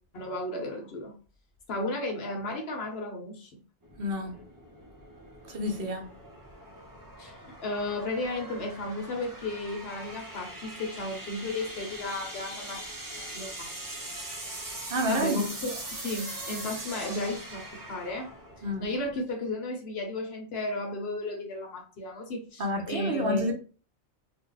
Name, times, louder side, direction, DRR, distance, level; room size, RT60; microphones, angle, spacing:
voice 1, 0.1-1.1 1.7-3.6 4.2-4.4 7.2-12.8 13.2-13.7 15.1-18.3 18.6-23.5, left 2 dB, 60° left, 1.0 m, -34 dB
sound 1, 3.8-19.2, right 1 dB, 25° right, 0.5 m, -42 dB
voice 2, 4.0-4.3 5.5-6.1 14.9-15.4 18.6-18.9 22.6-23.5, left 1 dB, 55° right, 0.9 m, -29 dB
2.6 x 2.1 x 3.8 m
omnidirectional pair, 1.2 m